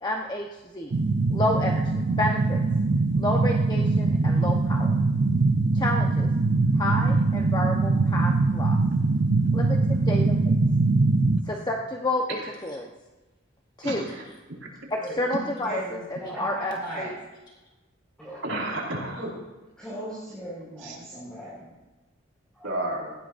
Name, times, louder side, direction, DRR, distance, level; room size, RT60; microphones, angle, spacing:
voice 1, 0.0-0.9 1.3-2.6 3.2-4.9 5.7-6.3 6.8-8.8 9.5-10.3 11.5-12.9 13.8-14.0 14.9-15.8 16.2-17.2, left 1 dB, 20° left, 0 dB, 1.0 m, -30 dB
sound 1, 0.9-11.4, right 3 dB, 60° right, 0.7 m, -22 dB
voice 2, 13.8-14.2 18.4-19.3 20.8-21.1 22.6-23.1, right 1 dB, 80° right, -3 dB, 5.1 m, -31 dB
voice 3, 15.6-17.1 18.2-18.4 19.8-21.7 22.5-22.8, equal, 5° left, -9 dB, 5.3 m, -37 dB
19.5 x 15.5 x 2.6 m, 1.1 s
head